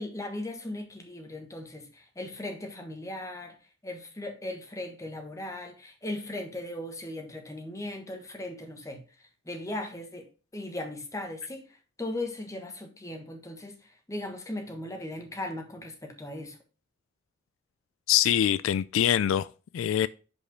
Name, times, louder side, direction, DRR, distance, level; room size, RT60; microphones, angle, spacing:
voice 1, 0.0-3.6 3.8-9.0 9.4-10.3 10.5-11.7 12.0-16.6, left 1 dB, 15° left, 1.3 m, -38 dB
voice 2, 18.1-20.1, left 10 dB, 85° left, 0.3 m, -24 dB
5.2 x 4.9 x 5.8 m
head